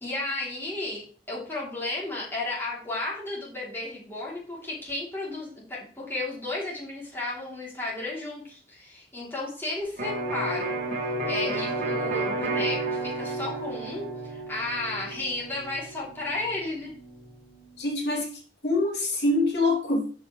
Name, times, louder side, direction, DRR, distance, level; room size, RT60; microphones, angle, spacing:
voice 1, 0.0-10.8 11.2-16.9, left 2 dB, 15° left, -6 dB, 3.1 m, -33 dB
Electric guitar, 10.0-17.7, right 2 dB, 50° right, 2.1 m, -32 dB
voice 2, 17.8-20.1, left 2 dB, 75° left, -2 dB, 2.8 m, -25 dB
13.0 x 5.4 x 3.2 m, 0.40 s
head